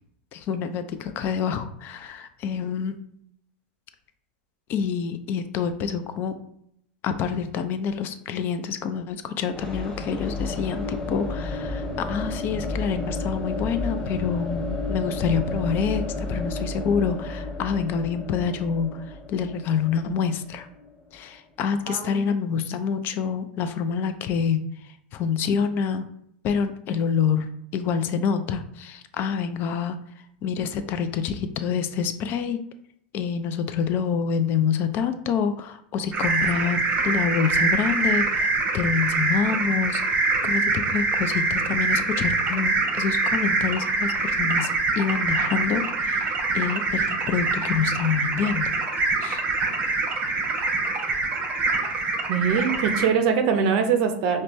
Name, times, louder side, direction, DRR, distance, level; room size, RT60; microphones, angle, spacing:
voice 1, 0.3-3.0 4.7-6.3 7.0-19.0 19.3-20.7 21.1-24.6 25.1-26.0 26.4-27.5 27.7-30.0 30.4-32.6 33.1-38.3 38.7-40.0 40.4-44.7 45.0-46.3 46.5-48.7 49.2-49.4, left 6 dB, 40° left, 10 dB, 0.4 m, -27 dB
sound 1, 9.5-21.3, left 2 dB, 15° left, 1.2 m, -32 dB
voice 2, 21.9-22.3 52.3-54.4, right 6 dB, 50° right, 5 dB, 0.5 m, -23 dB
sound 2, 36.1-53.1, right 3 dB, 30° right, 0.8 m, -24 dB
5.1 x 2.2 x 3.0 m, 0.72 s
hypercardioid pair, 100°, 5 cm